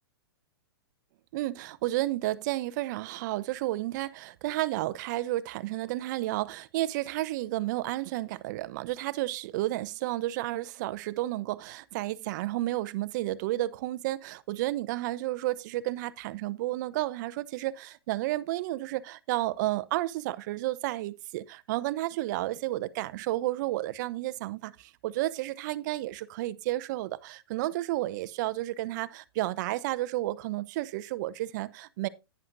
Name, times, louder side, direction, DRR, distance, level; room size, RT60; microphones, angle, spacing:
voice 1, 1.3-32.1, right 16 dB, 45° right, 0.7 m, -32 dB
11.0 x 9.6 x 2.6 m
hypercardioid pair, 130°, 14 cm